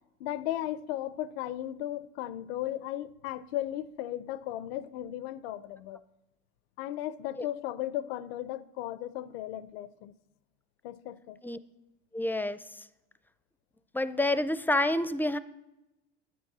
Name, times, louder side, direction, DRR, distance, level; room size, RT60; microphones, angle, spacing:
voice 1, 0.2-6.0 6.8-10.1 10.8-11.4, left 13 dB, 85° left, 0.6 m, -36 dB
voice 2, 12.1-12.9 13.9-15.4, left 1 dB, 5° left, 0.5 m, -28 dB
10.0 x 9.1 x 6.0 m
supercardioid pair, 100°, 30 cm